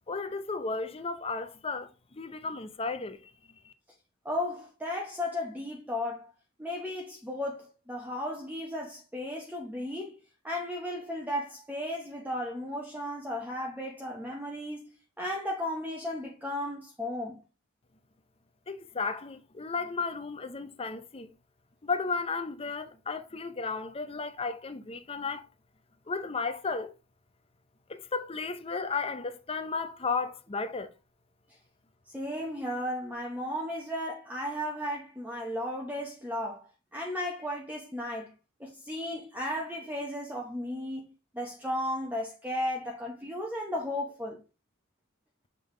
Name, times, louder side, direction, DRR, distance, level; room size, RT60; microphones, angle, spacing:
voice 1, 0.1-3.3 3.6-3.7 18.7-21.3 21.8-25.5 26.1-26.9 27.9-30.9, left 4 dB, 25° left, 0.6 m, -34 dB
voice 2, 4.2-6.3 6.6-10.2 10.4-14.9 15.2-17.4 32.1-38.3 38.6-44.4, left 1 dB, 10° right, 0.9 m, -35 dB
7.6 x 3.6 x 3.7 m
head